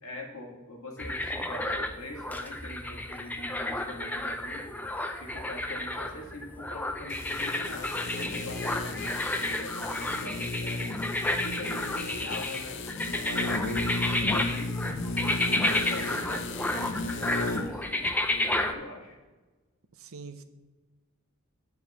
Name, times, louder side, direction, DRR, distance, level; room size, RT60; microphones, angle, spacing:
voice 1, 0.0-4.8 5.2-10.9 11.3-14.7 15.2-19.2, left 1 dB, 75° left, 0 dB, 2.0 m, -43 dB
sound 1, 1.0-18.7, left 1 dB, 10° left, 0.4 m, -31 dB
sound 2, 7.1-17.8 18.0-18.1, left 2 dB, 55° left, 0.6 m, -35 dB
voice 2, 19.9-20.4, right 4 dB, 70° right, 10 dB, 0.7 m, -44 dB
9.2 x 4.8 x 6.9 m, 1.2 s
head